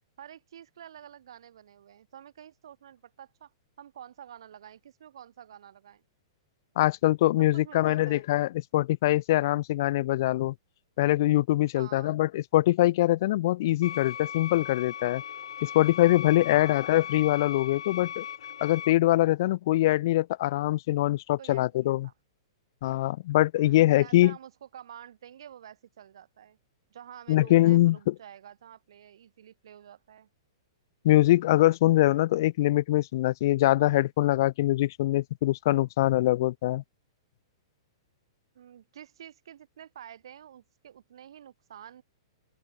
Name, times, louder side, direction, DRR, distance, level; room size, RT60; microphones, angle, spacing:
voice 1, 0.2-3.5 3.8-6.0 7.4-8.2 11.7-12.2 16.5-16.8 21.4-22.1 23.6-26.6 26.9-30.3 38.5-42.0, right 10 dB, 70° right, 2.4 m, -49 dB
voice 2, 6.8-10.5 11.0-15.2 15.6-18.2 18.6-22.1 22.8-24.3 27.3-28.1 31.0-36.8, left 16 dB, 45° left, 0.3 m, -23 dB
sound 1, 13.8-18.9, left 9 dB, 90° left, 0.6 m, -38 dB
open air
hypercardioid pair, 165°, 3 cm